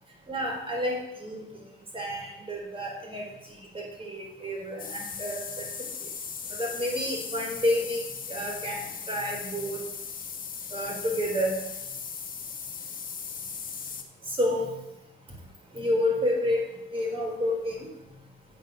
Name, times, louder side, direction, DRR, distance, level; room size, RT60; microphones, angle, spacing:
voice 1, 0.3-1.4 1.9-3.2 3.7-5.7 6.0-6.1 6.6-8.0 8.3-9.8 10.7-11.5 14.4-14.7 15.7-17.9, left 1 dB, 25° right, -1 dB, 4.0 m, -29 dB
sound 1, 4.8-14.0, left 6 dB, 45° left, 1.3 m, -38 dB
8.3 x 7.1 x 6.5 m, 0.88 s
cardioid pair, 90°, 20 cm